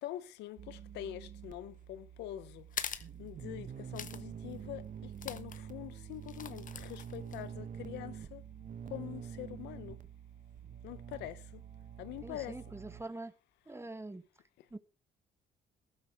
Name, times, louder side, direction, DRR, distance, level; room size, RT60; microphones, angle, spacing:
voice 1, 0.0-2.6 3.2-4.8 5.2-8.4 8.9-10.0 10.8-11.4 12.0-12.5, left 13 dB, 85° left, 1.0 m, -44 dB
sound 1, 0.6-13.0, right 8 dB, 50° right, 1.3 m, -47 dB
sound 2, 2.7-3.1 4.0-4.2 4.5-4.6 5.2-5.6 6.2-7.4, left 7 dB, 50° left, 1.3 m, -42 dB
voice 2, 12.2-13.3 13.6-14.2 14.7-14.8, right 2 dB, 15° right, 1.6 m, -44 dB
14.5 x 12.5 x 3.6 m
supercardioid pair, 75°, 17 cm